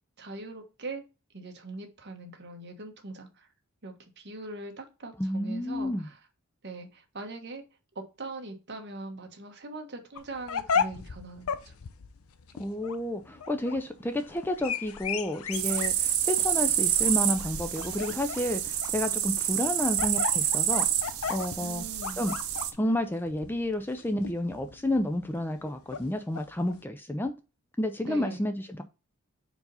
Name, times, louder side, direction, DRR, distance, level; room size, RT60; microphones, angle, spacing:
voice 1, 0.2-1.0 1.3-3.5 3.8-6.1 6.6-7.6 7.9-11.7 21.6-22.2 28.1-28.4, right 2 dB, 50° right, 1.3 m, -41 dB
voice 2, 5.2-6.1 12.6-20.9 21.3-21.8 22.2-22.3 22.8-27.3 27.8-28.8, left 1 dB, 10° left, 0.4 m, -30 dB
sound 1, 10.2-26.8, left 6 dB, 75° left, 0.6 m, -36 dB
sound 2, 15.5-22.7, right 11 dB, 75° right, 0.8 m, -28 dB
4.8 x 4.0 x 5.5 m
head